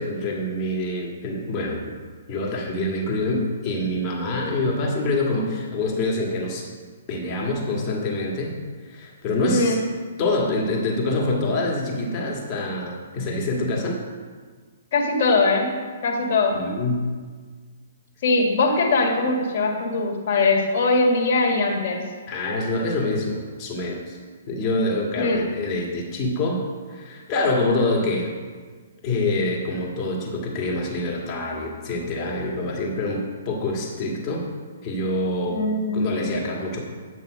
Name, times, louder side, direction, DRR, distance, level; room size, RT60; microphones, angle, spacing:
voice 1, 0.0-1.9 2.3-6.7 7.1-8.5 8.8-9.8 10.2-14.0 16.5-17.0 22.3-24.2 24.5-28.3 29.0-34.5 34.8-35.6 35.9-36.8, left 2 dB, 35° left, -2 dB, 2.0 m, -26 dB
voice 2, 9.5-9.8 14.9-15.7 16.0-16.6 18.2-22.0 25.2-25.4 35.5-36.1, left 3 dB, 50° left, -1 dB, 2.0 m, -21 dB
9.8 x 5.5 x 5.0 m, 1.5 s
hypercardioid pair, 130°, 0 cm